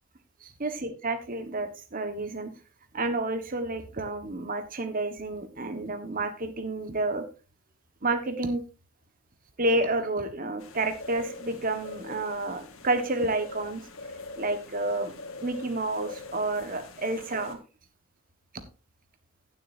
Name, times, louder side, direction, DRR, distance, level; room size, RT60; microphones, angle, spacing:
voice 1, 0.4-2.5 2.9-7.2 8.0-8.6 9.6-13.8 14.4-15.2 15.4-17.6 18.5-18.6, right 2 dB, 40° right, 8 dB, 1.4 m, -30 dB
medium wind in trees birds, 10.6-17.5, left 3 dB, 85° left, 1.7 m, -44 dB
16.5 x 7.7 x 2.7 m, 0.32 s
head